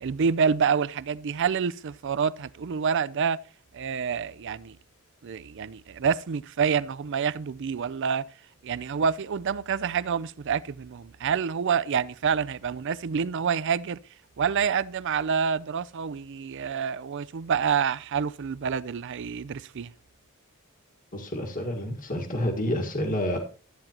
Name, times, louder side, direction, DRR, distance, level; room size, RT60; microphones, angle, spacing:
voice 1, 0.0-3.4 3.7-4.8 5.2-8.3 8.6-14.0 14.4-19.9, right 6 dB, 55° right, 0.4 m, -27 dB
voice 2, 21.1-23.4, left 1 dB, 40° left, 1.6 m, -29 dB
13.0 x 9.1 x 2.9 m
head